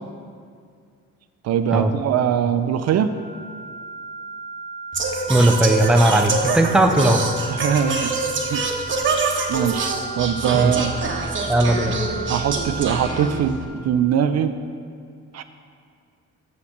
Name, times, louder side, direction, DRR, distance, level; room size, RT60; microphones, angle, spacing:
voice 1, 1.4-3.1 7.5-8.2 8.5-8.6 9.5-11.0 12.3-14.5 15.3-15.4, right 8 dB, 60° right, 10 dB, 0.4 m, -22 dB
sound 1, 3.1-13.1, right 4 dB, 20° left, 1.7 m, -35 dB
Singing, 4.9-13.6, right 3 dB, 40° right, 1.0 m, -26 dB
voice 2, 5.3-7.2 10.5-10.8 11.5-12.0, right 1 dB, 5° right, 5 dB, 0.5 m, -17 dB
6.6 x 5.6 x 6.5 m, 2.2 s
cardioid pair, 90°, 30 cm